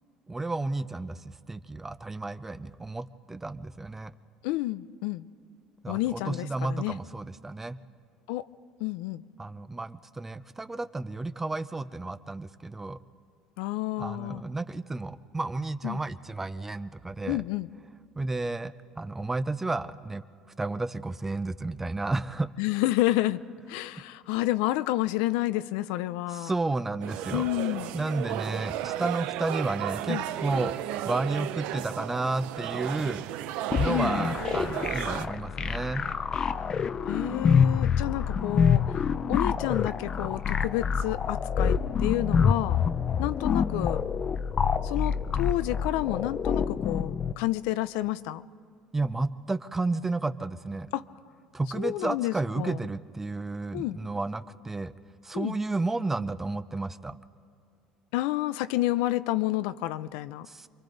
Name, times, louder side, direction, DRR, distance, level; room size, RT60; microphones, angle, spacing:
voice 1, 0.3-4.1 5.8-7.8 9.4-13.0 14.0-17.4 18.2-20.2 20.6-22.5 26.3-27.5 27.9-33.2 33.7-36.0 48.9-50.9 51.5-54.9 55.2-57.2 60.5-60.7, right 2 dB, 15° right, 13 dB, 0.6 m, -32 dB
voice 2, 4.4-5.3 5.9-7.0 8.3-8.5 8.8-9.2 13.6-14.4 15.8-16.0 17.3-17.7 22.6-23.4 23.7-26.5 27.3-27.9 30.1-30.3 33.9-34.2 37.1-38.8 39.3-42.8 43.2-44.0 44.8-48.5 50.9-51.0 51.8-52.8 53.7-54.0 55.3-55.6 58.1-60.5, left 16 dB, 85° left, 14 dB, 0.5 m, -29 dB
sound 1, 27.0-35.3, right 12 dB, 75° right, 0.6 m, -34 dB
sound 2, 33.7-47.3, left 6 dB, 35° left, 0.6 m, -26 dB
29.0 x 23.5 x 4.0 m, 2.2 s
supercardioid pair, 110°, 2 cm